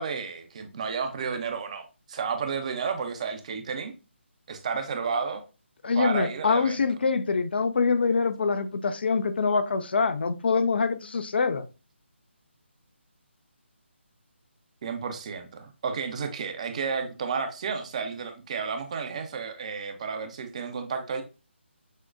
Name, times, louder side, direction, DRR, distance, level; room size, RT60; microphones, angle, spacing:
voice 1, 0.0-3.9 4.5-5.4 6.0-6.8 14.8-21.2, right 5 dB, 30° right, 0.6 m, -32 dB
voice 2, 5.8-11.7, left 4 dB, 55° left, 0.4 m, -25 dB
6.3 x 2.1 x 2.4 m
figure-of-eight pair, 150°, 7 cm